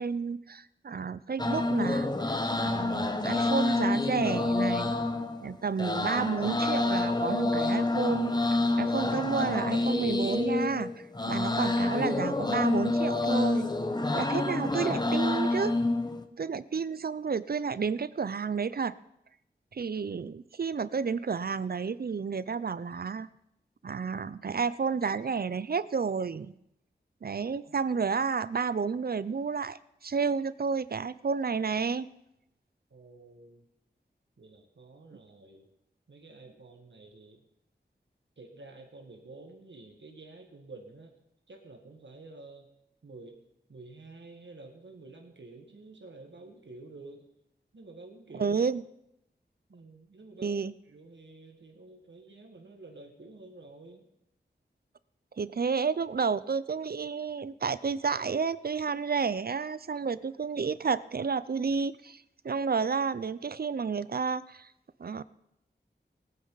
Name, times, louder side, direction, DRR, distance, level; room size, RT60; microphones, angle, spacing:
voice 1, 0.0-2.1 2.5-5.0 5.4-13.7 14.1-15.8 16.4-18.9 19.7-23.3 23.8-26.5 27.2-32.1 48.3-48.8 50.4-50.7 55.4-64.7 65.0-65.2, right 5 dB, 55° right, 17 dB, 0.5 m, -31 dB
sound 1, 1.4-16.2, left 2 dB, 20° left, 1.0 m, -28 dB
voice 2, 32.9-33.7 34.4-35.7 36.1-37.4 38.4-41.1 41.5-42.7 43.0-43.4 43.7-47.3 47.7-48.6 49.7-50.6 50.9-54.0, right 2 dB, 75° right, 2 dB, 1.8 m, -50 dB
19.5 x 9.6 x 4.0 m, 0.80 s
wide cardioid pair, 75°, 19 cm